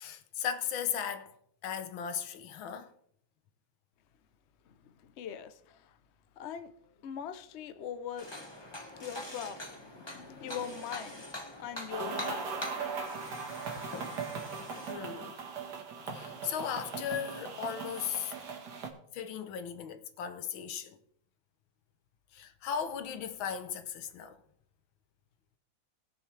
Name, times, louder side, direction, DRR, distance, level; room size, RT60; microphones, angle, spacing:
voice 1, 0.0-1.3 1.6-2.9 14.9-15.3 16.1-18.3 19.1-21.0 22.3-24.3, left 8 dB, 90° left, 1.7 m, -37 dB
voice 2, 5.0-5.9 6.4-6.7 7.0-8.4 9.0-11.3 11.6-12.5 12.8-12.9 13.6-13.8, left 8 dB, 60° left, 0.7 m, -42 dB
sound 1, 8.2-14.9, left 1 dB, 15° left, 1.4 m, -44 dB
sound 2, 11.9-18.9, right 5 dB, 60° right, 2.0 m, -39 dB
20.0 x 6.9 x 3.3 m
omnidirectional pair, 2.1 m